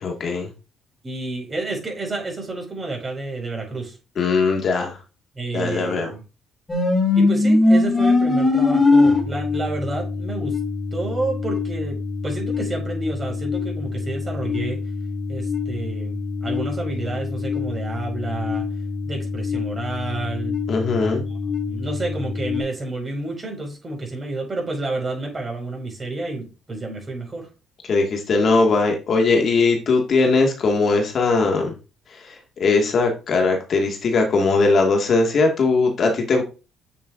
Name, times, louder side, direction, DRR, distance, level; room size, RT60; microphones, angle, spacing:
voice 1, 0.0-0.5 4.2-5.0 5.5-6.1 20.7-21.2 27.9-31.7 32.2-36.4, left 3 dB, 50° left, 2 dB, 1.9 m, -20 dB
voice 2, 1.0-4.0 5.3-6.2 7.1-10.6 10.9-12.0 12.2-14.8 15.3-18.6 19.0-20.6 21.0-21.4 21.7-27.5, right 2 dB, 30° right, 0 dB, 5.0 m, -30 dB
sound 1, 6.7-22.6, left 3 dB, 20° left, 2.5 m, -23 dB
8.9 x 7.0 x 2.6 m, 0.31 s
cardioid pair, 95°, 0 cm